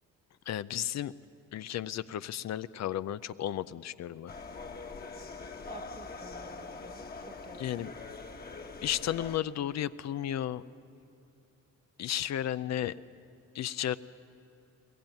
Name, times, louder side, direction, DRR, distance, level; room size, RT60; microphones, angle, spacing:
voice 1, 0.5-1.1 1.5-4.3 7.6-7.9 8.8-10.6 12.0-12.9 13.5-14.0, left 11 dB, 60° left, 15 dB, 0.6 m, -33 dB
sound 1, 4.3-9.4, left 4 dB, 30° left, 1.4 m, -43 dB
voice 2, 5.7-7.9, right 3 dB, 20° right, 13 dB, 0.6 m, -52 dB
21.5 x 19.0 x 9.1 m, 2.5 s
cardioid pair, 90°, 30 cm